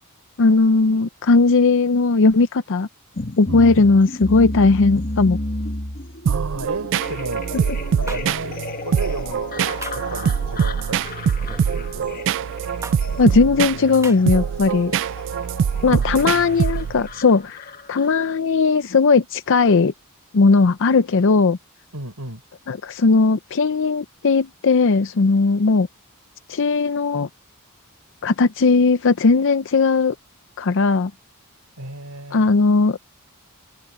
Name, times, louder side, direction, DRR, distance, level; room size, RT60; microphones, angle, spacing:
voice 1, 0.4-2.9 3.4-5.4 13.2-15.0 15.8-19.9 20.3-21.6 22.7-25.9 26.5-27.3 28.2-30.2 30.6-31.1 32.3-33.0, left 4 dB, 60° left, 0.6 m, -17 dB
sound 1, 3.2-18.3, left 2 dB, 40° left, 1.4 m, -33 dB
sound 2, 6.3-17.1, right 7 dB, 55° right, 0.3 m, -24 dB
voice 2, 6.3-7.4 8.0-12.2 15.9-16.5 21.9-22.4 31.8-32.5, right 2 dB, 85° right, 4.7 m, -34 dB
sound 3, 8.1-8.2 9.8-10.1 11.4-11.7 12.8-13.0 14.0-14.2, right 3 dB, 15° right, 1.3 m, -35 dB
open air
head